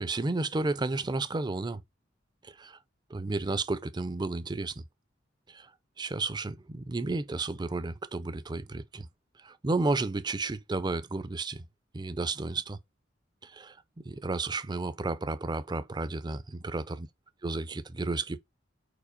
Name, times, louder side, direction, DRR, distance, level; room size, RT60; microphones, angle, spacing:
voice 1, 0.0-1.8 2.4-2.8 3.1-4.8 5.5-5.7 6.0-9.1 9.4-11.6 11.9-12.8 13.4-13.8 14.0-17.1 17.4-18.4, right 3 dB, 25° right, 0.5 m, -32 dB
4.9 x 4.4 x 5.0 m
head